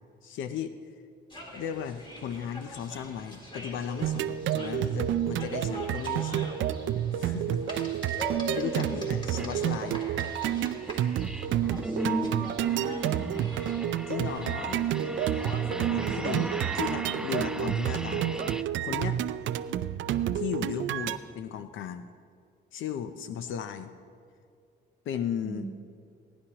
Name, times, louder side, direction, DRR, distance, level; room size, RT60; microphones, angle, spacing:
voice 1, 0.2-0.8 1.5-6.5 7.1-7.6 8.5-10.0 14.1-14.8 15.3-19.2 20.3-22.0 22.7-23.9 25.1-25.7, left 8 dB, 80° left, 10 dB, 0.6 m, -36 dB
sound 1, 1.3-16.7, equal, 25° left, 2.9 m, -43 dB
sound 2, 4.0-21.2, right 10 dB, 70° right, 0.5 m, -30 dB
voice 2, 8.3-9.0 12.6-13.4 16.0-16.6 25.4-25.7, right 3 dB, 35° right, 7 dB, 1.1 m, -39 dB
sound 3, 9.4-9.5 9.9-18.6, right 1 dB, 5° right, 0.3 m, -38 dB
20.5 x 10.0 x 2.9 m, 2.3 s
cardioid pair, 90°, 20 cm